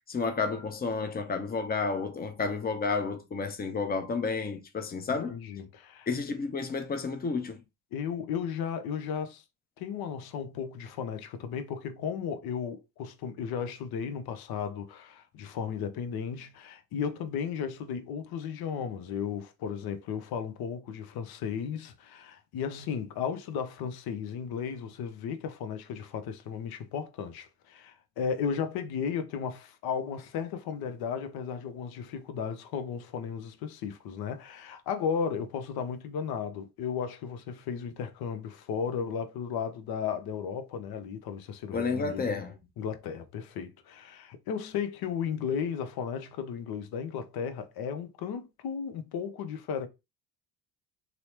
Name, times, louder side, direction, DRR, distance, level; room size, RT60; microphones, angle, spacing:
voice 1, 0.1-5.4 6.1-7.6 41.7-42.6, left 4 dB, 20° left, 0.6 m, -31 dB
voice 2, 5.3-6.1 7.9-9.4 9.8-42.4 42.8-49.9, left 7 dB, 55° left, 0.7 m, -35 dB
2.9 x 2.0 x 2.9 m
hypercardioid pair, 65°, 44 cm